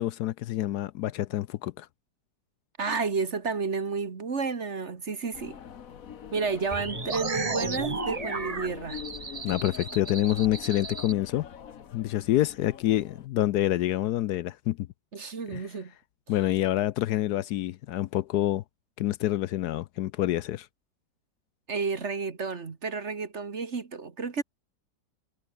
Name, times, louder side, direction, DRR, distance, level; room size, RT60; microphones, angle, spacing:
voice 1, 0.0-1.9 9.4-11.5 11.9-14.9 15.5-15.6 16.3-18.6 19.0-20.7, left 14 dB, 75° left, 1.1 m, -27 dB
voice 2, 2.8-5.6 6.3-9.0 15.1-15.9 21.7-24.4, right 4 dB, 40° right, 1.8 m, -31 dB
sound 1, 5.3-13.3, left 8 dB, 55° left, 1.5 m, -43 dB
sound 2, 6.7-11.1, right 4 dB, 25° right, 1.1 m, -34 dB
omnidirectional pair, 1.8 m